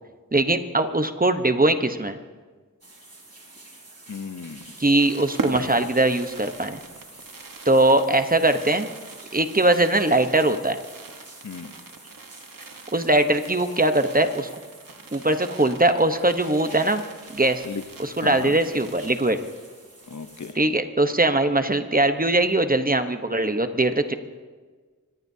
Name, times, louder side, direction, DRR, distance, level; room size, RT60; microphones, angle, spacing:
voice 1, 0.3-2.2 4.8-6.8 7.7-8.9 9.3-10.8 12.9-14.5 15.1-17.0 17.3-17.6 18.0-19.4 20.6-24.1, right 2 dB, 25° right, 8 dB, 1.0 m, -21 dB
sound 1, 2.8-20.5, right 2 dB, 50° right, 3.8 m, -47 dB
voice 2, 4.1-4.6 11.4-11.7 17.6-17.8 18.2-18.6 20.1-20.6, left 5 dB, 60° left, 9 dB, 1.0 m, -35 dB
Fireworks, 4.5-19.7 20.0-20.1 20.3-20.6, right 3 dB, 80° right, 1.4 m, -40 dB
25.0 x 19.0 x 2.8 m, 1.4 s
wide cardioid pair, 50°, 33 cm